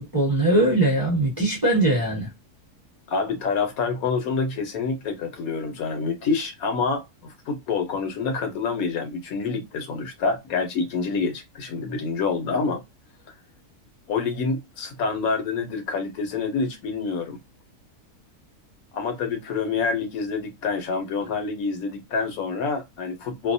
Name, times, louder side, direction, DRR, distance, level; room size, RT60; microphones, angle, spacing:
voice 1, 0.0-2.3, right 1 dB, 15° right, 0.9 m, -21 dB
voice 2, 3.1-12.8 14.1-17.4 18.9-23.5, left 4 dB, 70° left, 1.0 m, -27 dB
2.6 x 2.0 x 2.5 m
omnidirectional pair, 1.6 m